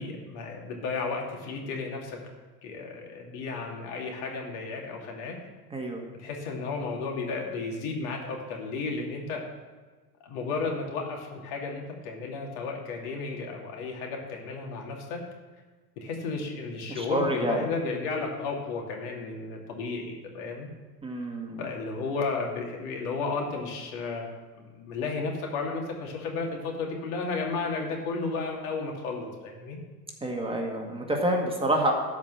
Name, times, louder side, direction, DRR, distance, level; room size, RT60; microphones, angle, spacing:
voice 1, 0.0-2.2 2.6-5.4 6.2-9.5 10.2-15.2 16.0-20.7 21.6-29.8, left 4 dB, 60° left, 0 dB, 2.8 m, -33 dB
voice 2, 5.7-6.0 16.9-17.6 21.0-21.6 30.2-31.9, right 1 dB, 10° right, 0 dB, 1.9 m, -28 dB
12.5 x 5.3 x 7.9 m, 1.3 s
hypercardioid pair, 95°, 46 cm